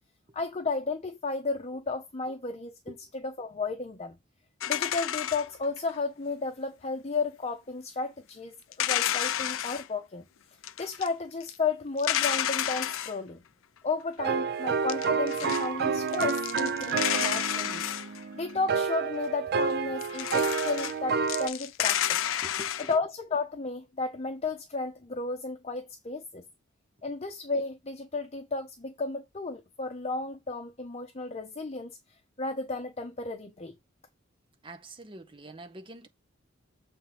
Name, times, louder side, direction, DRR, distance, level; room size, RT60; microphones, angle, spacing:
voice 1, 0.3-4.2 4.7-10.2 10.8-13.4 13.8-17.8 18.3-22.2 22.9-26.4 27.0-32.0 32.4-33.7, left 3 dB, 30° left, 0.8 m, -33 dB
sound 1, 4.6-5.9 8.7-9.9 10.6-11.1 11.4-11.5 12.0-13.1 14.7-15.7 16.1-18.5 20.0-21.0 21.3-23.0, left 11 dB, 80° left, 0.5 m, -30 dB
sound 2, 14.2-21.5, right 5 dB, 50° right, 0.5 m, -29 dB
voice 2, 22.4-22.9 34.6-36.1, right 1 dB, 25° right, 0.9 m, -45 dB
7.2 x 3.5 x 5.8 m
head